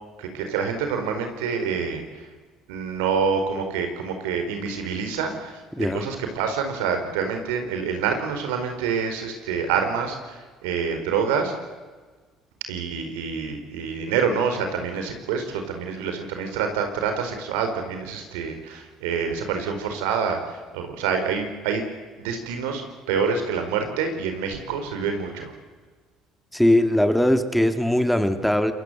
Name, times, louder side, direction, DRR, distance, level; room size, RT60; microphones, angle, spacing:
voice 1, 0.2-2.3 2.7-11.5 12.7-21.8 22.2-25.5, right 6 dB, 90° right, 6 dB, 4.6 m, -27 dB
voice 2, 5.7-6.0 26.5-28.7, left 1 dB, ahead, 7 dB, 2.6 m, -20 dB
27.5 x 22.0 x 8.2 m, 1.4 s
supercardioid pair, 75°, 0 cm